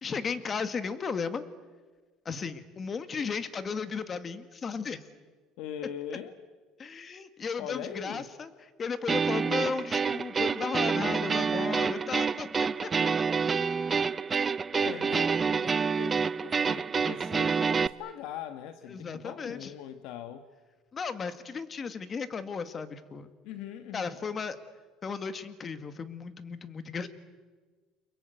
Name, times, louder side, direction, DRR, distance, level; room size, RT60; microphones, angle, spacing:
voice 1, 0.0-1.4 2.3-5.0 6.8-8.5 8.8-12.9 14.9-15.0 18.9-19.7 20.9-23.3 23.9-24.6 25.0-27.1, left 5 dB, 30° left, 11 dB, 2.0 m, -35 dB
voice 2, 5.6-6.4 7.6-8.3 14.7-20.5 23.4-24.2, left 9 dB, 70° left, 9 dB, 1.5 m, -41 dB
sound 1, 9.1-17.9, right 5 dB, 25° right, 0.8 m, -28 dB
30.0 x 23.0 x 8.1 m, 1.4 s
cardioid pair, 120°, 0 cm